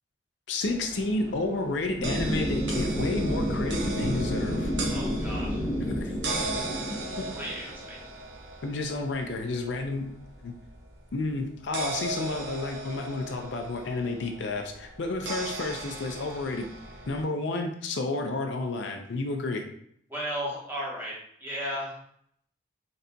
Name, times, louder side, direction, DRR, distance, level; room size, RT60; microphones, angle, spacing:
voice 1, 0.5-4.7 5.9-6.1 7.2-7.3 8.6-10.1 10.4-10.5 11.1-16.7 17.1-19.6, left 2 dB, 65° left, 4 dB, 0.5 m, -31 dB
sound 1, 0.6-17.2, right 2 dB, 60° right, 0.8 m, -39 dB
sound 2, 2.0-7.9, equal, 10° left, 0.8 m, -30 dB
voice 2, 4.8-5.7 7.3-8.0 20.1-22.0, equal, 10° right, -6 dB, 1.1 m, -35 dB
4.1 x 3.8 x 2.2 m, 0.68 s
head